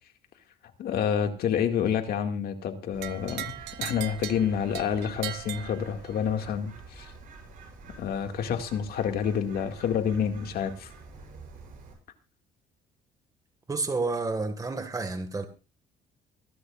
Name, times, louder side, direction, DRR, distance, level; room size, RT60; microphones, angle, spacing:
voice 1, 0.8-7.1 8.0-10.9, left 8 dB, 65° left, 2.1 m, -28 dB
Bird, 2.9-11.9, right 4 dB, 50° right, 6.8 m, -48 dB
sound 1, 3.0-6.4, right 16 dB, 90° right, 0.7 m, -39 dB
voice 2, 13.7-15.5, right 3 dB, 20° right, 1.8 m, -30 dB
24.5 x 11.5 x 2.5 m
cardioid pair, 110°, 17 cm